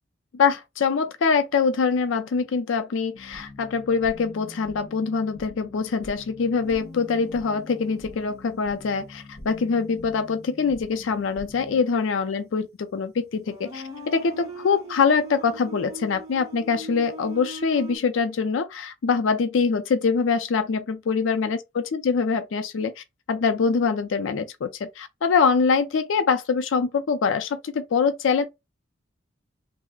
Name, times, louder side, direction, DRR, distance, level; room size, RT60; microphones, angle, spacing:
voice 1, 0.3-28.4, left 5 dB, 85° left, 0.4 m, -24 dB
sound 1, 3.1-11.8, left 1 dB, 45° left, 0.9 m, -45 dB
sound 2, 6.6-9.1 9.5-9.8 12.4-12.5 13.1-18.0, equal, 15° right, 1.2 m, -41 dB
3.1 x 2.0 x 3.5 m
head